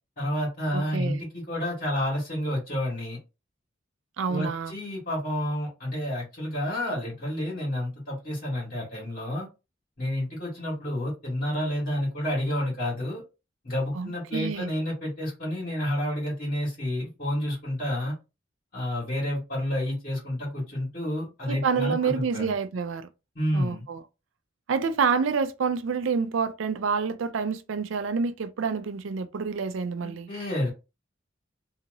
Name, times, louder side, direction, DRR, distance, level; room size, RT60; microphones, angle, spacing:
voice 1, 0.2-3.2 4.3-9.5 10.0-13.2 13.6-18.1 18.7-22.5 23.3-23.8 30.0-30.7, left 1 dB, 50° left, 1.6 m, -30 dB
voice 2, 0.7-1.2 4.2-4.8 13.9-14.7 21.5-23.1 23.5-24.0 24.7-30.3, right 5 dB, 85° right, 0.4 m, -28 dB
2.8 x 2.8 x 2.6 m
head